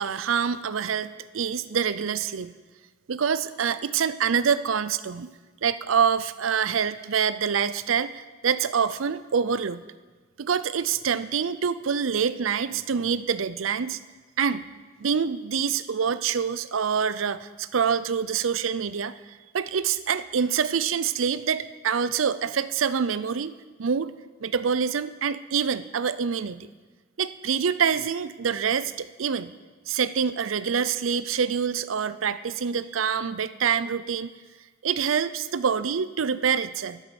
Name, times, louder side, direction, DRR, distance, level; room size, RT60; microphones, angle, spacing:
voice 1, 0.0-2.5 3.1-5.3 5.6-9.8 10.4-14.0 14.4-14.6 15.0-23.5 23.8-24.1 24.4-26.7 27.2-29.5 29.9-34.3 34.8-37.0, right 7 dB, 85° right, 15 dB, 0.5 m, -26 dB
11.5 x 10.0 x 7.0 m, 1.3 s
head